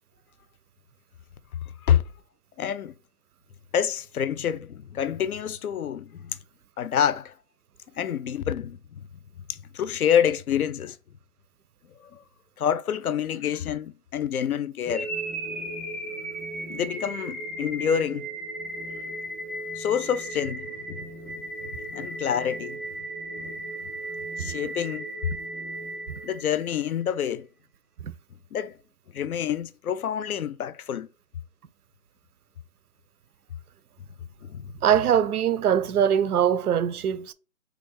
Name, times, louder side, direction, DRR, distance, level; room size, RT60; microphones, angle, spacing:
voice 1, 2.6-2.9 3.7-6.4 6.8-7.3 8.0-9.1 9.5-11.0 12.0-12.2 12.6-15.1 16.7-18.3 19.8-21.1 21.6-22.8 24.4-25.1 26.2-27.5 28.5-28.8 29.1-31.1 34.4-34.7, left 9 dB, 75° left, 0.5 m, -27 dB
sound 1, 14.9-26.9, right 1 dB, ahead, 0.3 m, -36 dB
voice 2, 34.8-37.3, right 9 dB, 90° right, 0.5 m, -22 dB
3.4 x 2.4 x 3.5 m
hypercardioid pair, 175°, 43 cm